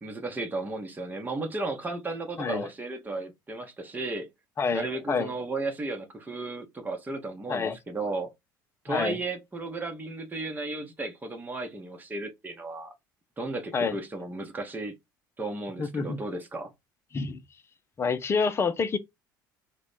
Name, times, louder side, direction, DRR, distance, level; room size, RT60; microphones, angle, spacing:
voice 1, 0.0-4.3 4.7-8.3 8.8-12.9 13.4-14.9 15.4-16.7, right 2 dB, 15° right, 0.9 m, -34 dB
voice 2, 2.4-2.7 4.6-5.3 7.5-7.8 8.9-9.2 13.7-14.0 15.8-16.2 17.1-17.4 18.0-19.0, left 5 dB, 25° left, 0.5 m, -28 dB
3.0 x 2.2 x 4.2 m
figure-of-eight pair, 65°, 11 cm